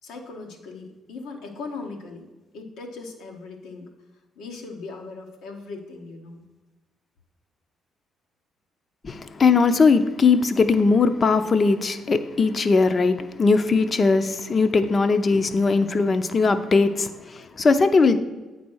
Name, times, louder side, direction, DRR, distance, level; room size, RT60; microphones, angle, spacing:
voice 1, 0.0-2.3 2.5-3.9 4.3-6.5, left 3 dB, 85° left, 1.2 m, -38 dB
voice 2, 9.0-18.2, left 4 dB, 40° left, 0.6 m, -20 dB
8.6 x 4.2 x 6.3 m
cardioid pair, 90°, 0 cm